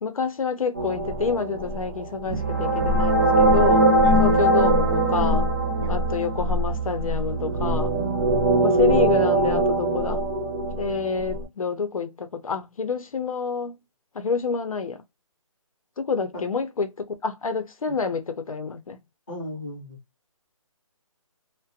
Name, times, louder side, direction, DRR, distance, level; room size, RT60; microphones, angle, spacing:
voice 1, 0.0-3.9 4.2-5.4 5.9-8.0 8.6-10.2 10.8-13.7 14.1-15.0 16.0-19.0, left 5 dB, 70° left, 0.6 m, -28 dB
sound 1, 0.8-11.4, right 1 dB, 35° right, 0.6 m, -22 dB
voice 2, 8.3-8.8 16.3-16.5 17.9-18.0 19.3-20.0, left 1 dB, 10° left, 0.7 m, -36 dB
2.4 x 2.1 x 2.6 m
hypercardioid pair, 175°, 18 cm